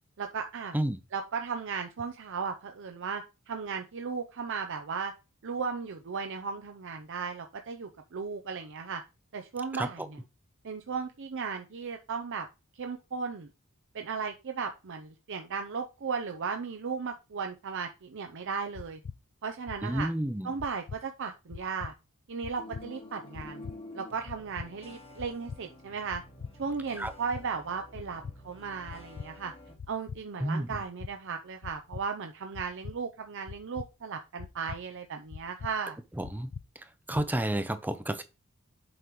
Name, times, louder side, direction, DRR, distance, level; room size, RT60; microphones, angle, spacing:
voice 1, 0.2-0.8 1.1-5.1 5.4-9.0 9.3-10.2 10.6-12.5 12.8-13.5 13.9-19.0 19.4-20.1 20.4-21.9 22.3-23.6 23.9-26.2 26.6-29.5 29.9-36.0, right 5 dB, 60° right, 0.6 m, -36 dB
sound 1, 18.7-19.2 19.7-20.1 20.6-21.0 21.5-21.9 22.4-22.8 23.3-23.8 24.3-24.7 25.2-25.6 26.1-26.5 27.0-27.4 27.9-28.4 28.9-29.3 29.8-30.2 30.7-31.1 31.6-32.0 32.5-33.0 33.5-33.9 34.4-34.8 35.3-35.7 36.2-36.6 37.1-37.3, left 5 dB, 55° left, 0.4 m, -41 dB
voice 2, 19.8-20.5 27.0-27.1 30.4-30.8 36.2-36.5 37.1-38.2, right 1 dB, 10° right, 0.6 m, -30 dB
sound 2, 22.6-29.8, left 1 dB, 25° left, 1.2 m, -49 dB
7.9 x 5.3 x 3.1 m
head